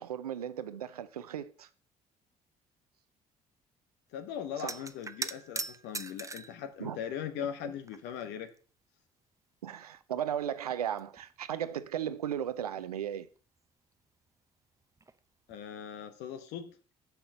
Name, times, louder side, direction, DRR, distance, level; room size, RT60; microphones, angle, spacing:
voice 1, 0.0-1.7 4.6-4.7 6.8-7.0 9.6-13.3, right 9 dB, 85° right, 0.5 m, -36 dB
voice 2, 4.1-8.5 15.5-16.8, left 9 dB, 65° left, 1.3 m, -39 dB
sound 1, 4.6-6.6 7.4-8.2 8.5-8.6 9.9-10.0 10.4-11.4 15.0-15.2 15.5-15.7, right 3 dB, 15° right, 0.7 m, -40 dB
7.1 x 5.8 x 6.7 m
figure-of-eight pair, 50°, 19 cm